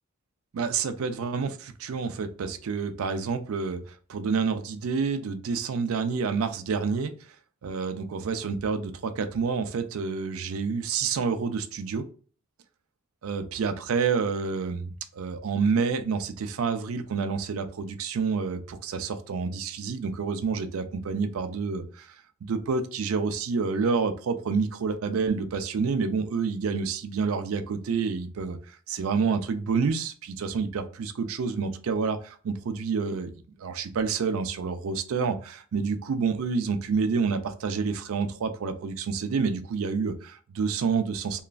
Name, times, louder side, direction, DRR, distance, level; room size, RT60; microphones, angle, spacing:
voice 1, 0.5-3.8 4.1-7.1 7.6-12.0 13.2-22.1 22.4-28.6 28.9-33.3 33.6-41.4, right 5 dB, 75° right, 9 dB, 0.4 m, -28 dB
2.9 x 2.4 x 2.3 m, 0.41 s
head